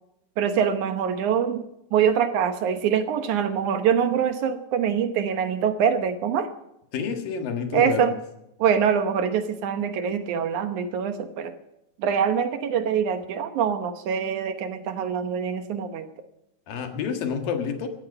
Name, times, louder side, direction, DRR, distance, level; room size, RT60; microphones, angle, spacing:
voice 1, 0.4-6.5 7.7-8.2 8.6-11.5 12.0-16.1, right 7 dB, 70° right, 9 dB, 2.2 m, -24 dB
voice 2, 6.9-8.1 16.7-17.9, left 6 dB, 75° left, 6 dB, 3.4 m, -28 dB
17.5 x 14.0 x 5.4 m, 0.84 s
omnidirectional pair, 4.1 m